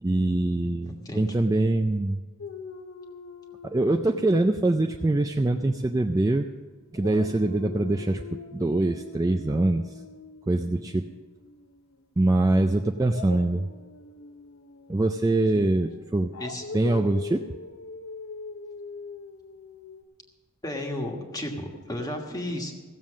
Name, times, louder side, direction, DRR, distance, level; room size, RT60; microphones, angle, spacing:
voice 1, 0.0-2.2 3.6-6.5 6.9-10.0 10.5-11.1 12.2-13.7 14.9-16.3 16.7-17.4, right 2 dB, 15° right, 4 dB, 0.3 m, -24 dB
voice 2, 0.9-1.3 15.5-15.7 16.4-16.6 20.6-22.7, left 1 dB, 15° left, 2 dB, 1.4 m, -33 dB
Dog, 2.4-6.6 6.9-11.9 13.0-20.0, left 4 dB, 70° left, 0.7 m, -43 dB
16.0 x 7.3 x 6.2 m, 1.4 s
head